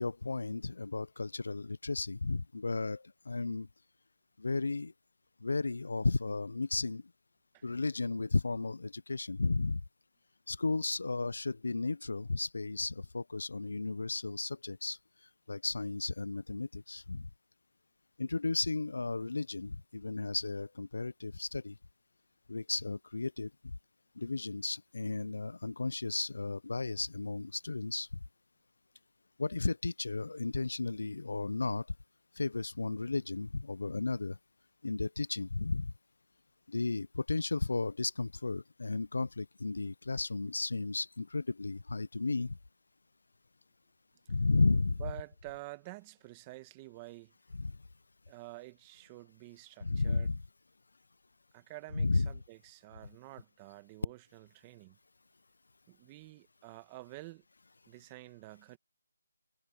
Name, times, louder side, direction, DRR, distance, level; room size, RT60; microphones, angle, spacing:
voice 1, 0.0-3.7 4.4-4.9 5.4-7.0 7.6-9.8 10.5-15.0 15.5-17.2 18.2-21.7 22.5-23.5 24.2-28.1 29.4-31.8 32.4-34.4 34.8-35.9 36.7-42.5 44.3-45.0 47.6-47.7 49.8-50.4 51.9-52.3, left 3 dB, 70° left, 0.4 m, -34 dB
voice 2, 45.0-47.3 48.3-50.4 51.5-55.0 55.9-57.4 57.9-58.8, right 21 dB, 15° right, 1.5 m, -49 dB
figure-of-eight pair, 170°, 0 cm